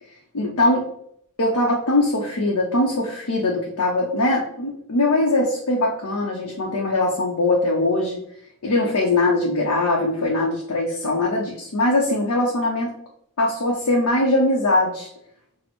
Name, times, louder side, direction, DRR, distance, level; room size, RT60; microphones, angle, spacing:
voice 1, 0.3-0.9 1.4-8.2 8.6-12.9 13.4-15.1, left 2 dB, 90° left, -2 dB, 0.7 m, -21 dB
6.1 x 2.1 x 3.0 m, 0.69 s
head